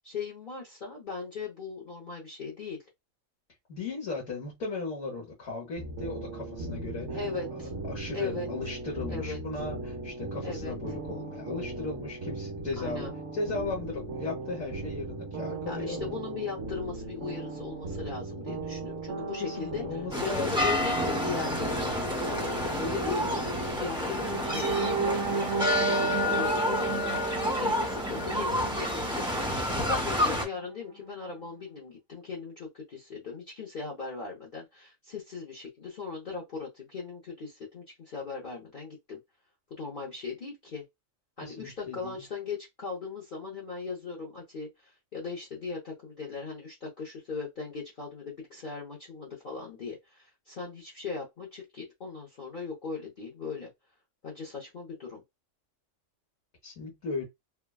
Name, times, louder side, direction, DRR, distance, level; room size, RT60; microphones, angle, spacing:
voice 1, 0.0-2.8 7.1-7.7 8.1-8.5 9.1-9.4 10.4-10.7 12.8-13.1 15.7-22.0 22.8-23.5 23.8-25.5 25.8-27.2 27.6-39.2 39.7-40.8 41.4-53.7 54.2-55.2, left 5 dB, 45° left, 0.9 m, -38 dB
voice 2, 3.7-7.2 7.5-13.1 13.3-16.0 19.4-20.7 24.0-24.2 41.4-42.2 56.6-57.2, left 3 dB, 75° left, 1.5 m, -36 dB
sound 1, 5.8-23.8, right 2 dB, 65° right, 1.1 m, -37 dB
sound 2, 20.1-30.4, left 1 dB, 5° right, 0.8 m, -29 dB
sound 3, 24.1-30.1 30.6-30.7 31.1-31.3, right 4 dB, 90° right, 1.1 m, -34 dB
3.3 x 2.2 x 2.3 m
omnidirectional pair, 1.4 m